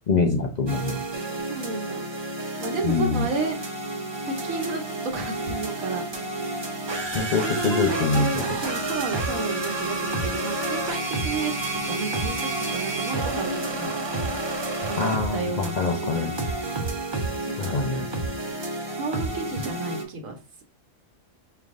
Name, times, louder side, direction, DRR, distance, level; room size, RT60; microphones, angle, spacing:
voice 1, 0.1-1.0 2.8-3.3 7.1-8.4 15.0-16.3 17.6-18.1, left 4 dB, 50° left, 3 dB, 0.5 m, -24 dB
sound 1, 0.7-20.0, right 2 dB, 25° right, 0.8 m, -30 dB
voice 2, 1.5-2.0 2.6-3.6 4.3-6.0 7.1-13.9 14.8-16.4 17.5-17.7 19.0-20.4, right 3 dB, 80° right, 2 dB, 1.2 m, -32 dB
4.9 x 3.3 x 2.5 m, 0.34 s
omnidirectional pair, 1.4 m